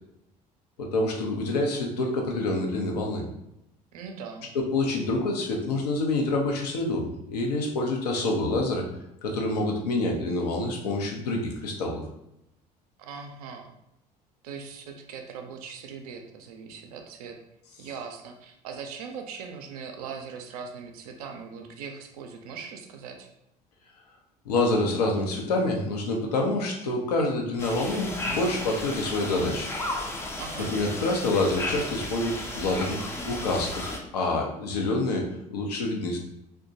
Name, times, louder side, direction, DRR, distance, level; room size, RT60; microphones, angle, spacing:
voice 1, 0.8-3.2 4.5-8.9 9.2-12.0 24.5-29.7 30.2-30.3 30.7-36.2, left 2 dB, 70° left, 1 dB, 0.6 m, -27 dB
voice 2, 3.9-4.5 13.0-13.7 14.4-17.4 17.8-23.3 30.4-30.7, right 6 dB, 65° right, 4 dB, 0.4 m, -40 dB
sound 1, 27.6-34.0, left 1 dB, 10° left, 0.4 m, -34 dB
2.8 x 2.2 x 2.6 m, 0.83 s
figure-of-eight pair, 60°, 21 cm